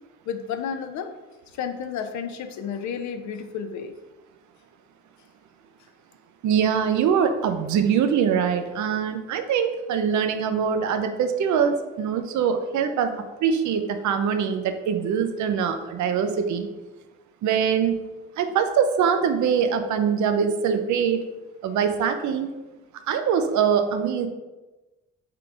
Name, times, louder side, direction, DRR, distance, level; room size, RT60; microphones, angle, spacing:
voice 1, 0.3-1.1 1.6-3.9, left 7 dB, 70° left, 8 dB, 0.5 m, -31 dB
voice 2, 6.4-16.7 17.4-17.9 18.4-21.3 21.6-22.5 23.1-24.3, right 7 dB, 70° right, 8 dB, 0.5 m, -23 dB
3.8 x 3.7 x 3.4 m, 1.1 s
cardioid pair, 90°, 30 cm